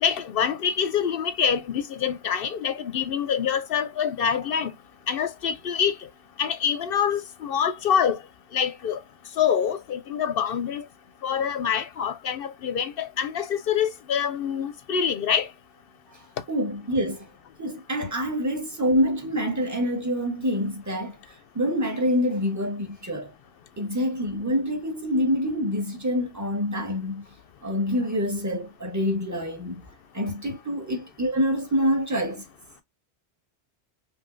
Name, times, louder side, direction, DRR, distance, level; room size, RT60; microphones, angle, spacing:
voice 1, 0.0-4.7 5.1-5.9 6.4-8.2 8.5-9.0 9.4-10.8 11.2-15.5, left 8 dB, 65° left, 0.7 m, -25 dB
voice 2, 16.5-17.3 17.6-23.3 23.8-27.2 27.6-29.8 30.1-32.4, equal, 15° right, 1.2 m, -26 dB
5.4 x 3.0 x 2.5 m
omnidirectional pair, 1.1 m